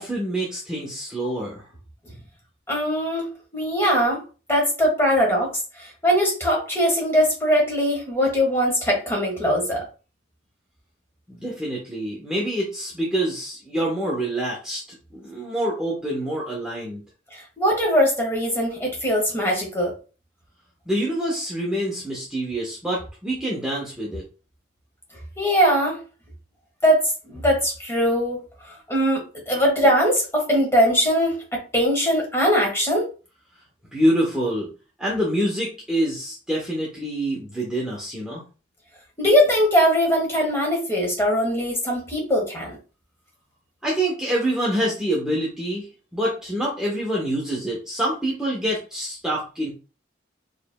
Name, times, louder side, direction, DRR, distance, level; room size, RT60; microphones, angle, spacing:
voice 1, 0.0-1.7 11.3-17.0 20.9-24.2 33.9-34.7 35.0-38.4 43.8-49.7, right 1 dB, 5° right, -5 dB, 0.8 m, -26 dB
voice 2, 2.7-4.2 4.5-5.5 5.8-9.8 17.3-19.9 25.4-26.0 26.8-33.1 39.2-42.8, equal, 15° left, -1 dB, 1.3 m, -21 dB
4.8 x 3.2 x 2.2 m, 0.34 s
head